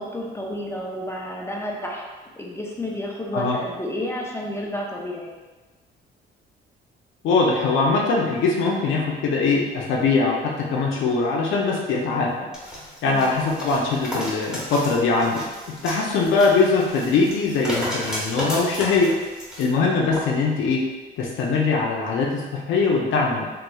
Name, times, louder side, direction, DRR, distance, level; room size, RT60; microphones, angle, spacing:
voice 1, 0.0-2.0 2.4-5.3 13.1-13.3, left 1 dB, 15° left, -2 dB, 0.6 m, -31 dB
voice 2, 7.2-12.5 13.0-15.4 15.8-19.2 19.6-20.8 21.2-23.5, left 4 dB, 80° left, -2 dB, 0.6 m, -21 dB
sound 1, 12.5-19.7 20.1-20.2, equal, 5° right, 1.0 m, -33 dB
3.5 x 3.0 x 2.3 m, 1.3 s
cardioid pair, 90°, 20 cm